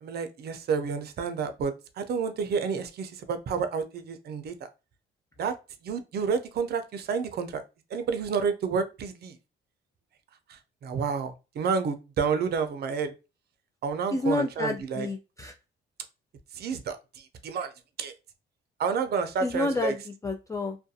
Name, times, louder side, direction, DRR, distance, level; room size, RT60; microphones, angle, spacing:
voice 1, 0.0-4.5 5.4-5.6 5.8-7.6 7.9-9.4 10.5-13.1 13.8-15.1 16.5-17.7 18.0-18.1 18.8-19.9, right 5 dB, 55° right, 0.5 m, -30 dB
voice 2, 14.1-15.5 19.4-20.8, left 2 dB, 15° left, 0.3 m, -29 dB
2.4 x 2.2 x 2.7 m
cardioid pair, 90°, 20 cm